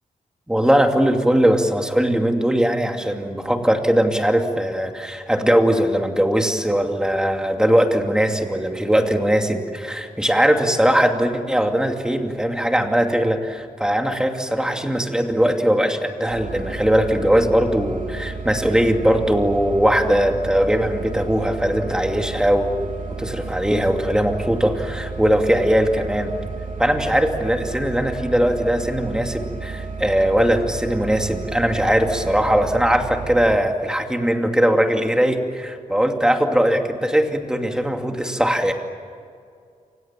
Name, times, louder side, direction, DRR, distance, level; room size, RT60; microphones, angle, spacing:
voice 1, 0.5-22.7 23.2-26.3 26.8-38.7, equal, 5° right, 4 dB, 2.6 m, -20 dB
sound 1, 16.3-33.6, right 4 dB, 70° right, 3.1 m, -32 dB
29.0 x 27.0 x 7.5 m, 2.3 s
wide cardioid pair, 145°, 14 cm